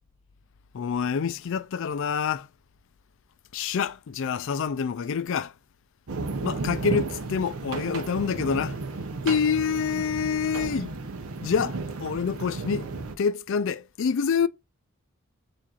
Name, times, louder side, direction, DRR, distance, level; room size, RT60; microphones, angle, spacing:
voice 1, 0.7-2.5 3.5-5.5 6.4-8.8 9.2-11.0 11.4-14.5, left 6 dB, 60° left, 0.4 m, -27 dB
sound 1, 6.1-13.2, right 3 dB, 75° right, 0.7 m, -33 dB
7.3 x 2.6 x 2.4 m
head